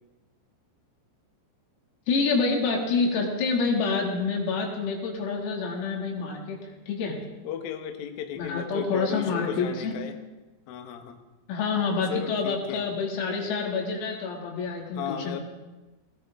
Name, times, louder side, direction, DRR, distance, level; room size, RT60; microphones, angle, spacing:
voice 1, 2.1-6.6 6.9-7.2 8.4-9.9 11.5-15.4, left 4 dB, 85° left, -1 dB, 5.4 m, -27 dB
voice 2, 7.4-10.2 10.7-11.2 12.1-12.8 14.9-15.4, left 8 dB, 70° left, 5 dB, 2.3 m, -35 dB
19.0 x 19.0 x 3.7 m, 1.1 s
omnidirectional pair, 6.0 m